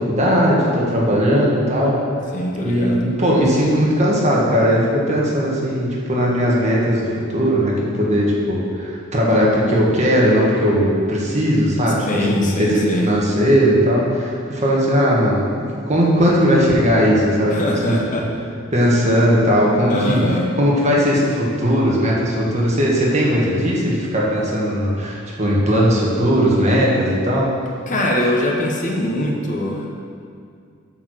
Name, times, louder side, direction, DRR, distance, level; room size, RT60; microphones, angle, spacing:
voice 1, 0.0-2.0 2.6-18.0 18.7-27.5, equal, 35° right, -4 dB, 1.5 m, -18 dB
voice 2, 2.3-3.0 12.1-13.1 17.5-18.2 19.9-20.4 27.9-30.0, left 1 dB, 40° left, -1 dB, 1.0 m, -22 dB
8.9 x 4.6 x 6.5 m, 2.3 s
head